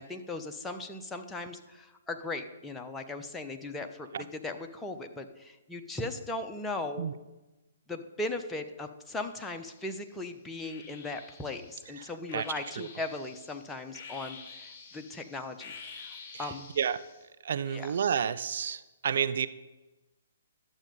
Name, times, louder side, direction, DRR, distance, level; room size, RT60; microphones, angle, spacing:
voice 1, 0.0-7.1 7.9-16.7 17.7-17.9, left 2 dB, 10° left, 4 dB, 0.9 m, -38 dB
sound 1, 9.2-10.0 10.6-17.3, left 5 dB, 30° left, 2.2 m, -49 dB
voice 2, 12.0-12.5 12.8-12.9 16.3-17.0 17.4-19.5, right 8 dB, 60° right, 13 dB, 0.5 m, -31 dB
11.5 x 7.4 x 5.3 m, 1.1 s
figure-of-eight pair, 130°, 0 cm